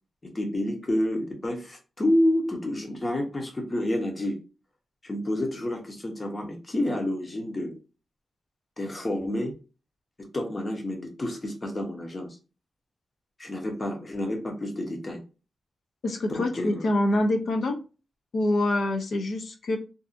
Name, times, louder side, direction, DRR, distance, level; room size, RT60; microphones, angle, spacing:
voice 1, 0.3-4.4 5.0-7.8 8.8-9.5 10.3-12.3 13.4-15.2 16.3-16.9, left 1 dB, 30° left, 2 dB, 0.8 m, -29 dB
voice 2, 16.0-17.8 18.3-19.8, left 1 dB, 70° left, 5 dB, 0.6 m, -25 dB
2.6 x 2.4 x 2.4 m, 0.32 s
cardioid pair, 90°, 0 cm